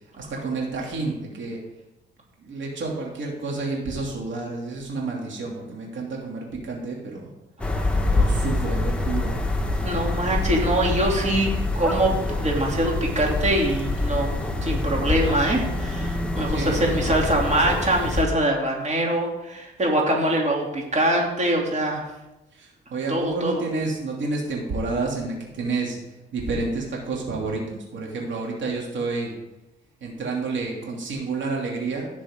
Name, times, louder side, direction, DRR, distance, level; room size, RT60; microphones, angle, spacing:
voice 1, 0.2-1.6 2.5-7.3 8.1-9.3 16.5-16.8 22.9-26.0 26.3-29.3 30.0-32.1, right 3 dB, 70° right, -1 dB, 2.7 m, -29 dB
sound 1, 7.6-18.2, left 2 dB, 5° left, 1.5 m, -25 dB
voice 2, 9.8-11.5 11.7-22.0 23.1-23.6, right 1 dB, 35° right, -1 dB, 3.0 m, -23 dB
16.5 x 6.7 x 3.8 m, 0.96 s
cardioid pair, 90°, 20 cm